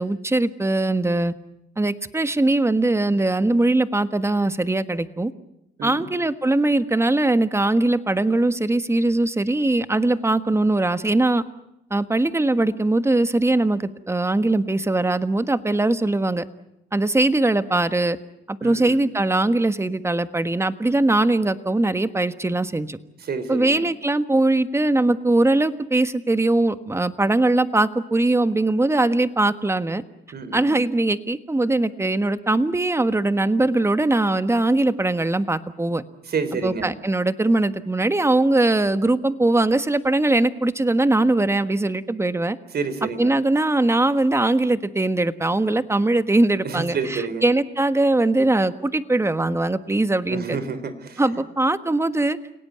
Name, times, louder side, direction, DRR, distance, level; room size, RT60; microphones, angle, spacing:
voice 1, 0.0-1.3 1.8-5.3 5.8-11.4 11.9-16.4 16.9-18.2 18.5-23.0 23.5-30.0 30.5-36.0 36.6-42.6 43.2-50.6 51.2-52.4, right 2 dB, 15° right, 11 dB, 1.5 m, -21 dB
voice 2, 18.6-19.0 23.2-23.8 30.3-30.8 36.3-36.9 42.7-43.3 46.6-47.5 50.3-51.2, right 5 dB, 55° right, 12 dB, 3.7 m, -29 dB
29.5 x 18.0 x 9.4 m, 0.85 s
cardioid pair, 90°, 20 cm